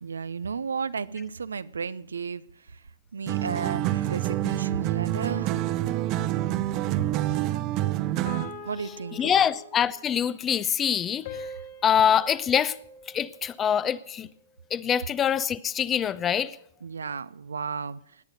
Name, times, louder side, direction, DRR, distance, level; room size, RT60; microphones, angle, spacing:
voice 1, 0.0-2.4 2.7-2.8 3.1-5.5 8.6-9.5 16.8-18.0, right 5 dB, 80° right, 0.6 m, -33 dB
sound 1, 3.3-8.6, right 14 dB, 35° right, 0.7 m, -27 dB
sound 2, 6.3-7.0 8.3-10.1 11.3-13.7, left 3 dB, 55° left, 4.1 m, -44 dB
voice 2, 9.1-11.5 11.8-12.8 13.1-14.3 14.7-16.6, left 8 dB, 20° left, 0.6 m, -24 dB
18.0 x 9.8 x 6.6 m
hypercardioid pair, 120°, 0 cm